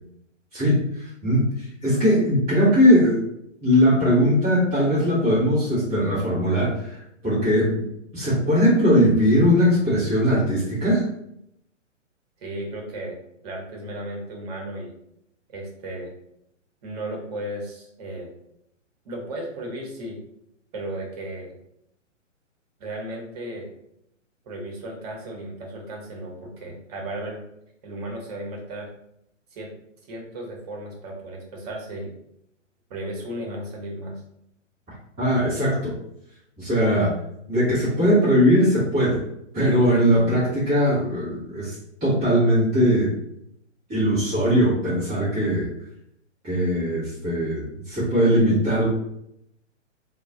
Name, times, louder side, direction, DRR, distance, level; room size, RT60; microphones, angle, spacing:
voice 1, 0.5-3.3 3.6-7.9 8.1-11.0 35.2-35.9 36.6-37.1 37.5-39.2 39.5-41.8 42.0-43.1 43.9-45.7 46.4-48.9, equal, 5° right, -13 dB, 0.3 m, -20 dB
voice 2, 12.4-13.2 13.4-14.9 15.5-16.1 16.8-18.3 19.0-20.2 20.7-21.5 22.8-23.7 24.4-27.4 27.8-28.9 29.5-29.7 30.1-32.1 32.9-34.2, right 1 dB, 30° right, 0 dB, 0.8 m, -35 dB
2.2 x 2.1 x 3.7 m, 0.76 s
figure-of-eight pair, 125°, 38 cm